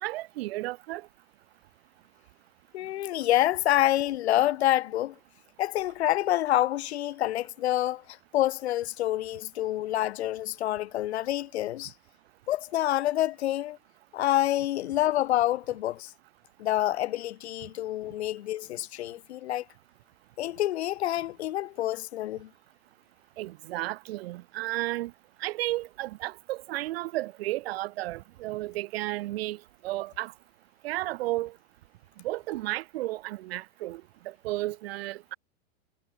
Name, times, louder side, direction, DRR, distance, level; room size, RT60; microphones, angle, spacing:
voice 1, 0.0-1.1 23.4-25.1 25.4-30.3 30.8-31.5 32.2-35.4, right 18 dB, 65° right, 3.8 m, -33 dB
voice 2, 2.7-5.2 5.6-11.9 12.5-13.8 14.1-16.1 16.6-19.7 20.4-22.5, left 14 dB, 80° left, 2.1 m, -27 dB
supercardioid pair, 135°, 32 cm